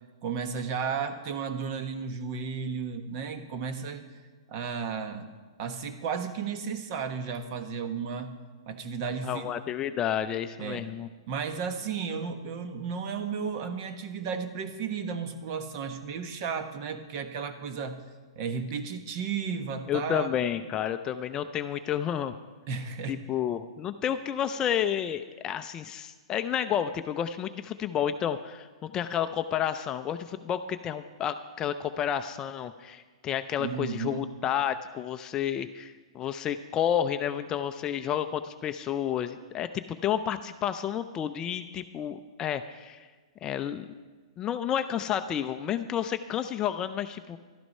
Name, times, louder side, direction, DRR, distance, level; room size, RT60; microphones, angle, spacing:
voice 1, 0.2-4.0 4.5-5.3 5.6-8.3 8.7-9.5 10.6-10.9 11.3-18.0 18.4-20.3 22.7-23.2 33.6-34.3, right 6 dB, 40° right, 8 dB, 1.2 m, -33 dB
voice 2, 9.2-11.1 19.9-22.3 23.1-43.1 43.4-43.9 44.4-47.4, left 9 dB, 20° left, 9 dB, 0.4 m, -30 dB
12.5 x 11.0 x 5.4 m, 1.4 s
hypercardioid pair, 150°, 3 cm